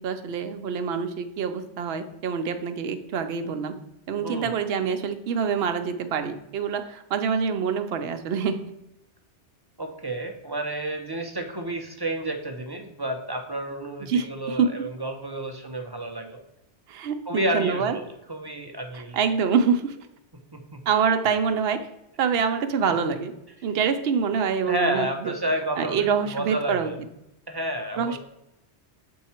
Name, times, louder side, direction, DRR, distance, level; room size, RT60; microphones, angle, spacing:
voice 1, 0.0-3.7 4.1-8.6 14.0-14.7 16.9-18.0 18.9-20.1 20.9-21.8 22.2-23.3 23.6-25.3 25.8-26.9 28.0-28.2, right 6 dB, 70° right, 7 dB, 0.8 m, -26 dB
voice 2, 4.2-4.5 9.8-16.4 17.3-18.0 18.3-19.2 20.5-20.8 24.6-26.1 26.3-27.0 27.5-28.1, right 1 dB, 30° right, 4 dB, 0.5 m, -30 dB
7.0 x 4.7 x 4.2 m, 0.88 s
omnidirectional pair, 1.2 m